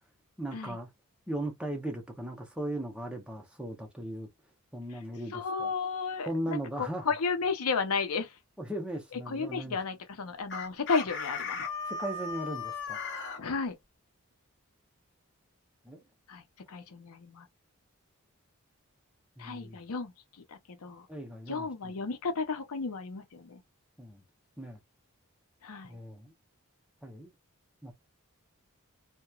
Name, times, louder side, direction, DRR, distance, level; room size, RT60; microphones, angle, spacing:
voice 1, 0.4-0.9 1.3-4.3 4.7-5.7 6.3-7.1 8.6-9.8 11.9-13.0 15.8-16.0 19.4-19.8 21.1-21.9 24.0-24.2 24.6-24.8 25.8-26.3 27.0-27.3 27.8-27.9, right 1 dB, 5° right, 0.6 m, -38 dB
voice 2, 5.3-8.4 9.1-11.6 13.4-13.7 16.3-17.5 19.4-21.1 21.5-23.6 25.6-26.0, left 4 dB, 90° left, 0.6 m, -33 dB
Chicken rooster, 10.5-13.4, left 4 dB, 55° left, 0.7 m, -36 dB
2.9 x 2.2 x 2.3 m
head